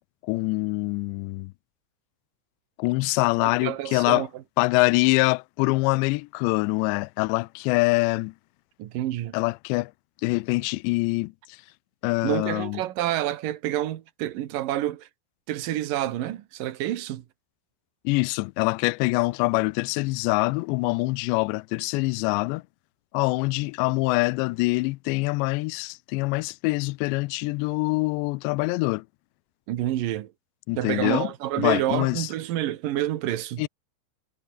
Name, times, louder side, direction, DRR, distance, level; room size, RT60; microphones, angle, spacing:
voice 1, 0.2-1.5 2.8-4.3 4.6-8.3 9.3-9.9 10.2-11.6 12.0-12.8 18.1-22.6 23.1-29.1 30.7-31.3 31.6-32.3 33.6-33.7, left 25 dB, 85° left, 2.5 m, -24 dB
voice 2, 3.6-4.3 8.8-9.4 12.2-15.1 15.5-17.2 29.7-30.3 30.8-33.6, right 13 dB, 65° right, 2.2 m, -28 dB
omnidirectional pair, 5.6 m